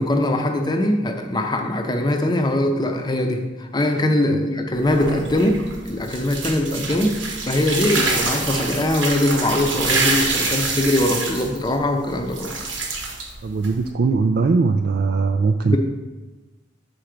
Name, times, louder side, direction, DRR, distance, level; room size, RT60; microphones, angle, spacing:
voice 1, 0.0-5.6 5.8-7.2 7.5-12.5 15.6-15.8, left 1 dB, 20° left, 4 dB, 0.6 m, -21 dB
sound 1, 4.7-13.9, right 3 dB, 85° right, 1.1 m, -26 dB
voice 2, 13.4-15.8, right 4 dB, 55° right, 6 dB, 0.3 m, -20 dB
6.9 x 4.4 x 5.1 m, 1.2 s
head